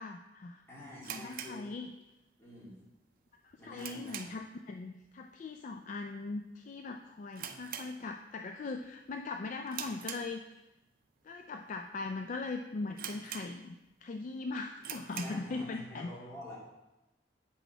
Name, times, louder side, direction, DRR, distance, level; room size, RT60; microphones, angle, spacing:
voice 1, 0.0-0.6 1.1-1.9 3.4-10.4 11.2-16.1, left 3 dB, 45° left, 5 dB, 0.3 m, -40 dB
voice 2, 0.7-1.6 2.4-2.8 3.5-4.2 15.1-16.6, left 1 dB, 15° left, -8 dB, 2.5 m, -48 dB
sound 1, 1.0-2.4 2.6-2.7 3.2-4.6 4.9-5.2 5.5-5.6 6.2-6.5 6.8-6.9 7.3-8.5 8.8-9.1 9.7-10.8 11.4-11.5 12.1-12.2 12.4-12.5 13.0-13.9 14.3-14.4 14.8-15.5, right 8 dB, 55° right, 0.5 m, -44 dB
8.3 x 5.9 x 3.4 m, 0.96 s
head